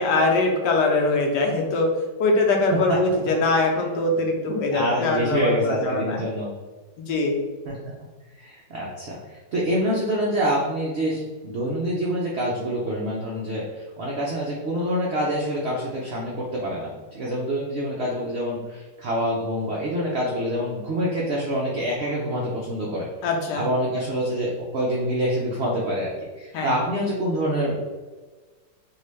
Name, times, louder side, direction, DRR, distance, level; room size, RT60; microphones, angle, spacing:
voice 1, 0.0-1.9 2.2-6.2 7.0-7.4 23.2-23.7 26.5-26.7, left 2 dB, 80° left, 2 dB, 1.2 m, -22 dB
voice 2, 4.7-6.5 7.7-7.8 8.4-23.1 23.5-27.8, equal, 85° right, -4 dB, 0.5 m, -26 dB
3.6 x 2.4 x 3.2 m, 1.3 s
omnidirectional pair, 1.9 m